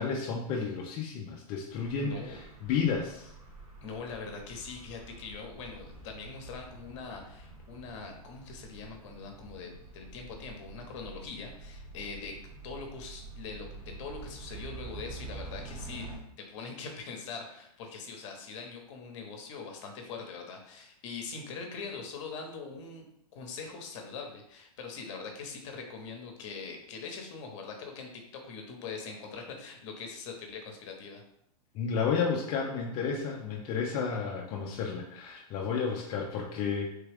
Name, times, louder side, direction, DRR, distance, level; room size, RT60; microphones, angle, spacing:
voice 1, 0.0-3.3 31.7-36.9, left 5 dB, 25° left, -1 dB, 0.3 m, -32 dB
sound 1, 1.7-16.2, right 3 dB, 70° right, 1.1 m, -47 dB
voice 2, 2.0-2.4 3.8-16.1 16.4-23.1 23.3-31.2, left 5 dB, 50° left, 3 dB, 0.8 m, -42 dB
3.3 x 2.2 x 3.3 m, 0.75 s
hypercardioid pair, 140°, 20 cm